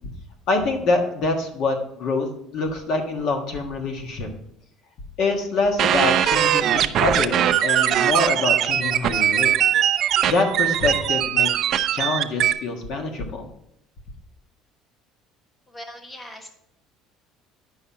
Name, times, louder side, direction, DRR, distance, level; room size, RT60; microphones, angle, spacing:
voice 1, 0.5-2.3 2.5-4.3 5.2-9.5 10.2-13.5, left 3 dB, 55° left, 3 dB, 1.5 m, -25 dB
sound 1, 5.8-12.5, right 10 dB, 45° right, 0.5 m, -20 dB
voice 2, 15.7-16.5, left 1 dB, 15° left, 4 dB, 1.3 m, -40 dB
9.6 x 5.7 x 4.6 m, 0.74 s
cardioid pair, 150°, 0 cm